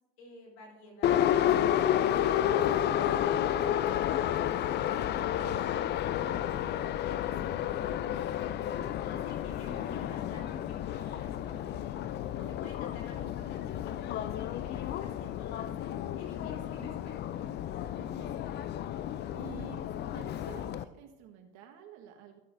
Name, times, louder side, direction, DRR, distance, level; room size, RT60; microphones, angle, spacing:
voice 1, 0.2-1.4 7.0-17.5, left 1 dB, 80° left, -1 dB, 3.3 m, -52 dB
Subway metro underground, 1.0-20.8, left 11 dB, 35° left, 0.4 m, -31 dB
voice 2, 6.2-6.5 17.9-18.5 19.3-19.9 20.1-22.4, right 10 dB, 60° right, 4 dB, 1.4 m, -50 dB
13.5 x 8.2 x 2.6 m, 1.0 s
hypercardioid pair, 90°, 31 cm